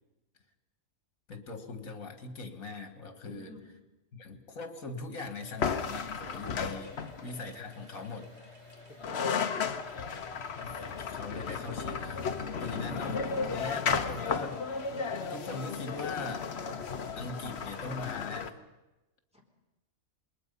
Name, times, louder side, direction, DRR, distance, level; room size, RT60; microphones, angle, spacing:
voice 1, 1.3-3.5 4.1-8.3 10.6-12.2 12.6-14.6 15.3-16.5 17.2-18.6, left 3 dB, 70° left, 7 dB, 2.2 m, -41 dB
voice 2, 3.2-3.6 9.0-9.4 12.7-14.3 19.3-19.4, left 1 dB, 5° right, -2 dB, 3.7 m, -49 dB
sound 1, 5.4-18.2, left 2 dB, 20° right, 2.5 m, -52 dB
sound 2, 5.6-7.4 8.7-8.8 9.0-18.5, left 5 dB, 50° left, 1.2 m, -34 dB
27.0 x 21.0 x 5.5 m, 1.0 s
omnidirectional pair, 1.5 m